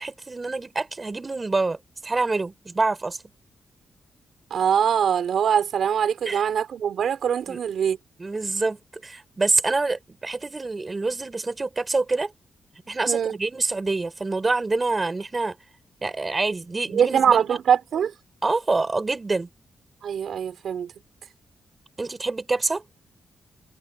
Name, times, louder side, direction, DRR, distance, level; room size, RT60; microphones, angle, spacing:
voice 1, 0.0-1.8 2.0-3.2 6.2-6.4 7.5-7.6 8.2-8.8 9.0-12.3 12.9-15.6 16.0-17.6 18.4-19.5 22.0-22.8, right 3 dB, 20° right, 6.5 m, -26 dB
voice 2, 4.5-8.0 13.1-13.3 16.9-18.1 20.0-20.9, right 8 dB, 70° right, 4.6 m, -23 dB
wide cardioid pair, 175°, 0 cm